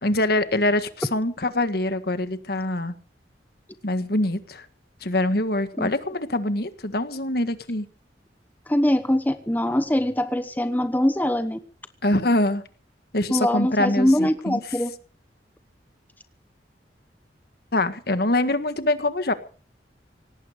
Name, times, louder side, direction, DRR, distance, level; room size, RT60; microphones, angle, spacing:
voice 1, 0.0-2.9 3.8-4.6 5.0-7.9 12.0-12.6 13.1-14.6 17.7-19.3, left 1 dB, 60° left, 10 dB, 1.7 m, -24 dB
voice 2, 8.7-11.6 13.3-14.9, left 1 dB, 10° left, 10 dB, 0.9 m, -22 dB
18.5 x 15.0 x 5.1 m, 0.41 s
head